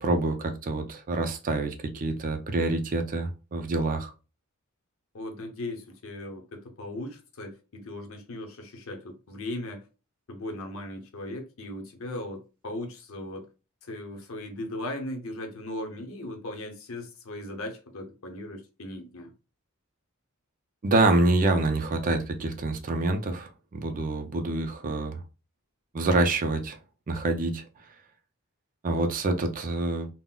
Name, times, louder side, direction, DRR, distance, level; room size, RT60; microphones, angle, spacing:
voice 1, 0.0-4.1 20.8-25.2 25.9-26.8 27.1-27.6 28.8-30.1, right 2 dB, 40° right, 0.4 m, -26 dB
voice 2, 5.1-9.8 10.3-13.5 13.8-19.3, left 1 dB, 65° left, 0.7 m, -38 dB
3.7 x 2.0 x 2.2 m
head